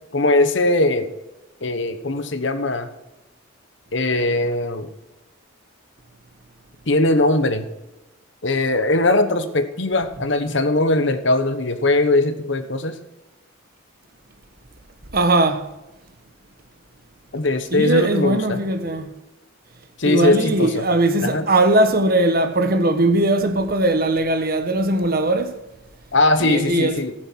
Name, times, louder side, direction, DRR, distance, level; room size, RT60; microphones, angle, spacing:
voice 1, 0.1-1.1 1.6-2.9 3.9-4.9 6.9-7.7 8.4-13.0 17.3-18.6 20.0-20.8 21.2-21.5 26.1-27.1, left 2 dB, 55° left, 1.1 m, -20 dB
voice 2, 15.1-15.7 17.7-19.1 20.0-25.6 26.4-27.0, right 2 dB, 45° right, 1.2 m, -19 dB
15.5 x 9.1 x 4.6 m
head